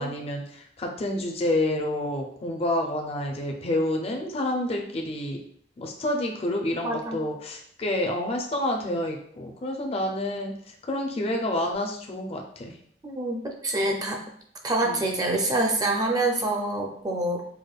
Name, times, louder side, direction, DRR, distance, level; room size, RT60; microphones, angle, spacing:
voice 1, 0.0-5.4 5.8-12.8 14.8-15.0, left 1 dB, 35° left, 1 dB, 0.5 m, -29 dB
voice 2, 6.8-7.2 13.0-14.2 14.6-17.4, right 2 dB, 20° right, 1 dB, 0.4 m, -26 dB
4.8 x 2.2 x 2.3 m, 0.63 s
head